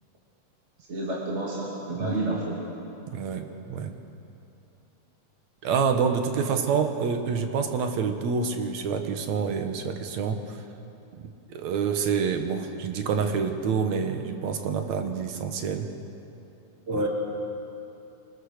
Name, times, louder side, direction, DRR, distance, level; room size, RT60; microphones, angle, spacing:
voice 1, 0.9-2.6 6.4-6.5 16.9-17.1, right 1 dB, 25° right, -4 dB, 2.1 m, -29 dB
voice 2, 3.1-4.0 5.6-10.6 11.2-15.9 16.9-17.0, right 6 dB, 70° right, 6 dB, 2.4 m, -27 dB
24.0 x 20.5 x 6.6 m, 2.8 s
omnidirectional pair, 3.6 m